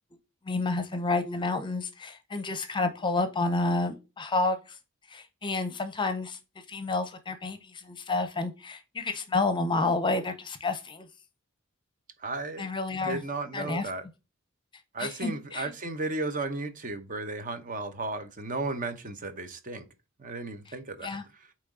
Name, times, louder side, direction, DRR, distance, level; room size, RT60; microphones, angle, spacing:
voice 1, 0.5-4.6 5.1-6.4 6.7-7.6 7.8-11.1 12.6-13.2 13.5-13.9 15.0-15.7 21.0-21.2, left 3 dB, 25° left, 0.7 m, -29 dB
voice 2, 12.2-12.7 13.0-14.0 14.9-19.8 20.2-21.1, right 3 dB, 40° right, 0.8 m, -34 dB
8.5 x 3.1 x 3.7 m
head